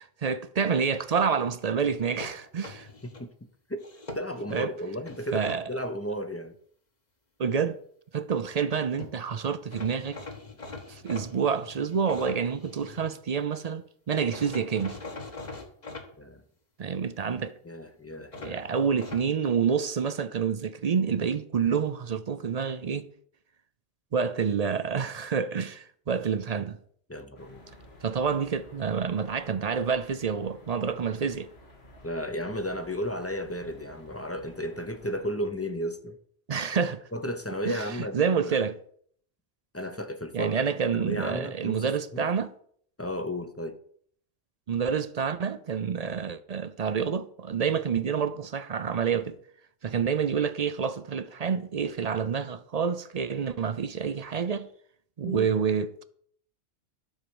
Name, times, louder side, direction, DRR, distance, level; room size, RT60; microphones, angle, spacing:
voice 1, 0.0-2.9 4.5-4.7 5.3-5.6 7.4-7.8 8.1-10.2 10.9-15.0 16.8-17.6 18.4-23.0 24.1-26.8 28.0-31.5 36.5-37.0 37.7-38.8 40.3-42.5 44.7-49.4 49.8-54.7 55.2-56.0, right 6 dB, 50° right, 0.5 m, -28 dB
sound 1, 1.8-3.2 3.8-4.6 5.1-5.6 8.7-8.8 9.0-9.2 9.7-13.2 14.3-16.1 18.3-19.3, left 3 dB, 40° left, 1.5 m, -42 dB
voice 2, 4.1-6.5 16.2-16.4 17.6-18.6 27.1-27.6 32.0-36.2 37.1-38.6 39.7-40.6 40.9-42.3 43.0-43.8 55.2-55.5, equal, 15° left, 0.7 m, -34 dB
sound 2, 27.4-35.2, left 2 dB, 70° left, 2.2 m, -53 dB
13.0 x 4.5 x 7.1 m
omnidirectional pair, 1.1 m